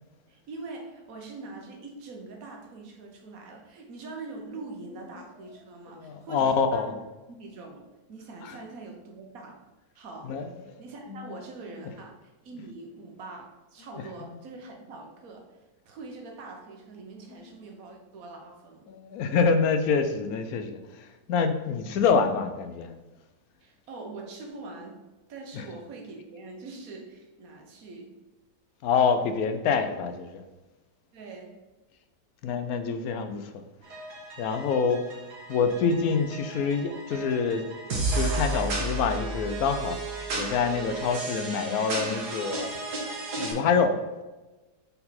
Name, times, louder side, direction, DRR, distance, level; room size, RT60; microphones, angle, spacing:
voice 1, 0.3-6.9 7.3-9.6 9.9-10.4 10.8-15.6 15.8-18.9 23.6-28.2 31.1-31.6, right 3 dB, 65° right, 2 dB, 1.4 m, -43 dB
voice 2, 5.9-6.9 8.4-8.6 10.2-10.8 11.2-11.4 13.9-14.3 17.4-17.5 18.9-22.9 25.5-25.6 28.8-30.4 32.4-33.6 34.4-35.1 35.5-40.0 40.4-42.7 43.4-44.0, left 5 dB, 70° left, 8 dB, 1.0 m, -26 dB
sound 1, 33.8-43.5, right 2 dB, 85° right, 1.9 m, -33 dB
5.3 x 4.5 x 4.2 m, 1.1 s
omnidirectional pair, 1.7 m